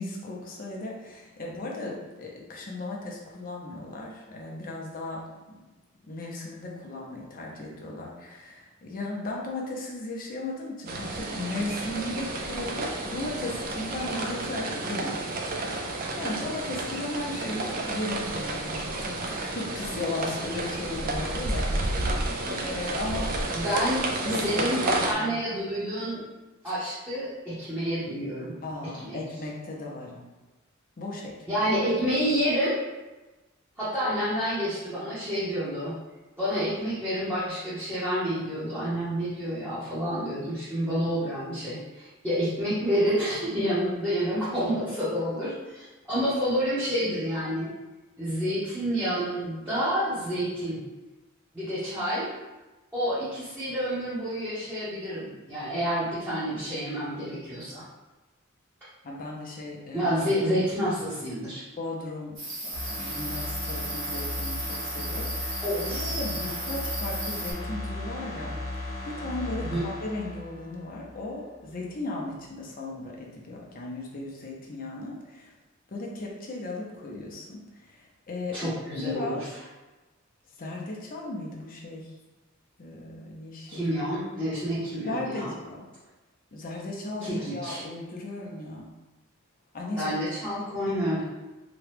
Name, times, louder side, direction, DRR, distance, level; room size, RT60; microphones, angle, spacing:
voice 1, 0.0-5.2 5.5-5.6 6.1-15.2 15.5-22.2 22.6-23.3 24.2-25.4 28.6-30.2 31.0-31.3 59.0-60.2 61.8-62.4 62.6-65.6 65.9-75.5 75.9-78.6 78.9-79.5 80.6-82.1 82.8-83.9 85.0-85.8 86.5-88.9 89.7-90.1 90.8-90.9, left 2 dB, 45° left, -1 dB, 0.6 m, -36 dB
sound 1, 10.9-25.1, right 2 dB, 45° right, 0.4 m, -31 dB
voice 2, 22.3-22.6 23.5-26.2 26.6-28.5 29.0-29.2 31.5-32.8 33.8-35.9 36.4-47.7 48.2-50.8 51.5-52.3 52.9-57.8 59.9-61.6 65.6-66.3 69.6-69.9 78.5-79.5 83.7-85.5 87.2-87.8 90.0-91.2, equal, 10° right, -13 dB, 0.9 m, -29 dB
sound 2, 62.4-67.5, right 1 dB, 65° right, 1.4 m, -35 dB
sound 3, 62.7-71.4 71.8-71.9, left 2 dB, 75° left, 1.0 m, -36 dB
2.9 x 2.3 x 3.3 m, 1.1 s
head